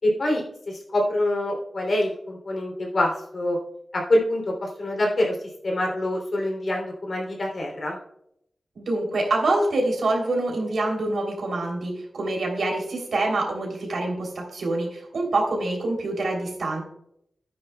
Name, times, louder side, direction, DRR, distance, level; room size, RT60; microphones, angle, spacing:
voice 1, 0.0-3.6 3.9-8.0, left 1 dB, 55° left, 0 dB, 3.1 m, -25 dB
voice 2, 8.7-16.8, right 2 dB, 75° right, 0 dB, 3.2 m, -26 dB
14.0 x 9.8 x 2.3 m, 0.74 s
wide cardioid pair, 100°, 0 cm